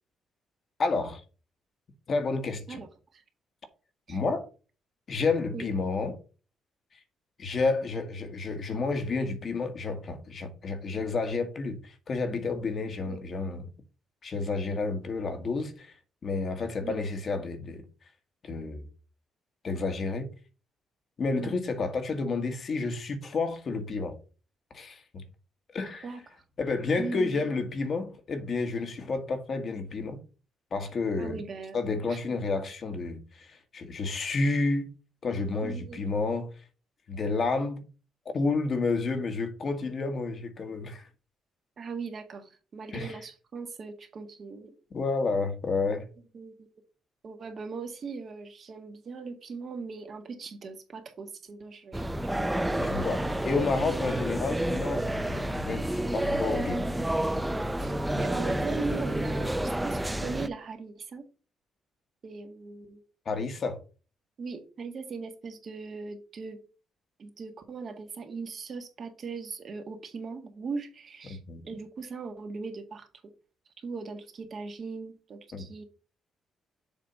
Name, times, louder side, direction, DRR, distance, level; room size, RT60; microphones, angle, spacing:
voice 1, 0.8-1.2 2.1-2.8 4.1-4.5 5.1-6.2 7.4-13.7 14.2-15.9 16.2-17.8 18.4-18.8 19.6-20.3 21.2-24.1 24.7-25.2 25.7-26.1 26.6-30.2 30.7-31.4 31.7-34.9 35.2-36.5 37.1-37.8 38.3-41.0 42.9-43.2 44.9-46.1 52.8-56.8 63.2-63.8 71.5-71.6 75.5-75.7, left 3 dB, 50° left, 1.6 m, -30 dB
voice 2, 27.0-27.4 31.2-31.8 32.1-32.2 35.6-36.0 41.8-44.7 46.3-46.7 47.2-52.1 52.9-53.0 57.8-61.2 62.2-63.0 64.4-66.6 67.2-71.4 71.7-73.1 73.8-75.8, right 4 dB, 50° right, 1.8 m, -39 dB
sound 1, 51.9-60.5, right 1 dB, 10° right, 0.5 m, -29 dB
7.3 x 3.4 x 5.5 m
cardioid pair, 90°, 0 cm